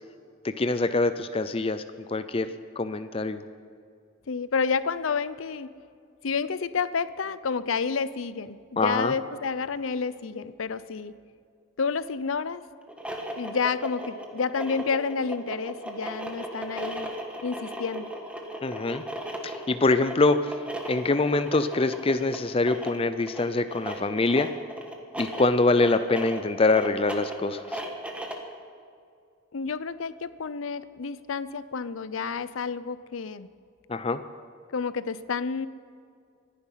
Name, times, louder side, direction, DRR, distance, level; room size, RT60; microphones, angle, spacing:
voice 1, 0.4-2.5 2.8-3.4 8.8-9.1 18.6-19.0 19.4-20.5 20.9-24.5 25.2-27.8 33.9-34.2, left 3 dB, 30° left, 11 dB, 0.5 m, -24 dB
voice 2, 4.3-5.7 6.2-11.1 11.8-12.6 13.4-17.1 17.4-18.1 29.5-33.5 34.7-35.7, left 5 dB, 90° left, 15 dB, 0.6 m, -30 dB
sound 1, 12.8-28.5, equal, 5° right, 1.4 m, -37 dB
24.5 x 10.0 x 5.7 m, 2.3 s
head